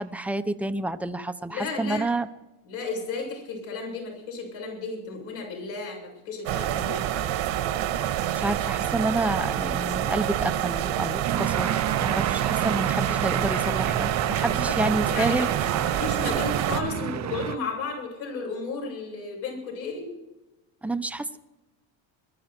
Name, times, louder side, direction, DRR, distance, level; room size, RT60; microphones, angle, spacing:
voice 1, 0.0-2.3 8.0-8.1 8.3-15.5 20.8-21.4, right 2 dB, 5° right, 9 dB, 0.9 m, -29 dB
voice 2, 1.5-2.1 2.7-7.0 14.7-14.8 15.1-15.5 15.8-20.1, left 4 dB, 70° left, 0 dB, 7.2 m, -33 dB
sound 1, 6.5-16.8, right 11 dB, 70° right, 1.7 m, -27 dB
sound 2, 11.2-17.6, right 9 dB, 35° right, 0.8 m, -30 dB
22.0 x 12.5 x 4.5 m, 1.0 s
supercardioid pair, 90°, 48 cm